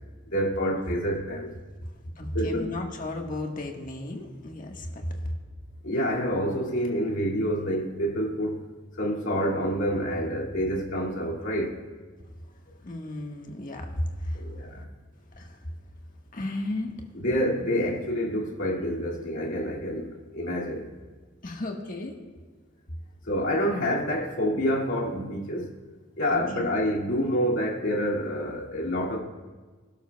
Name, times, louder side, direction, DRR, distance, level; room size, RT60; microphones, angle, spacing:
voice 1, 0.3-1.5 2.3-2.7 5.8-8.6 9.0-11.8 14.3-14.9 17.1-20.9 23.3-25.7 26.2-29.2, equal, 70° left, 2.4 m, -27 dB
voice 2, 2.2-5.3 12.8-14.4 15.3-15.7 16.3-17.0 21.4-22.2 26.3-26.6, left 1 dB, 40° left, 1.5 m, -34 dB
25.0 x 12.0 x 2.3 m
head